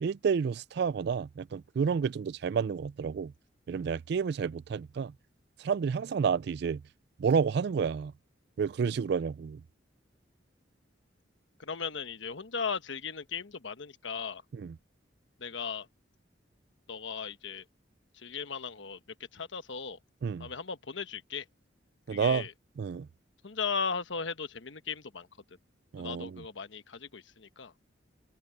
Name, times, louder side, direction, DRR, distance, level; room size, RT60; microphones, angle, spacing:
voice 1, 0.0-3.3 3.7-5.1 5.6-6.8 7.2-8.1 8.6-9.6 14.5-14.8 20.2-20.5 22.1-22.5 22.8-23.1 25.9-26.4, right 6 dB, 55° right, 0.3 m, -30 dB
voice 2, 11.6-14.4 15.4-15.9 16.9-17.6 18.1-19.0 19.3-20.0 20.4-21.4 22.1-22.5 23.4-25.3 26.0-27.9, left 5 dB, 75° left, 1.1 m, -37 dB
head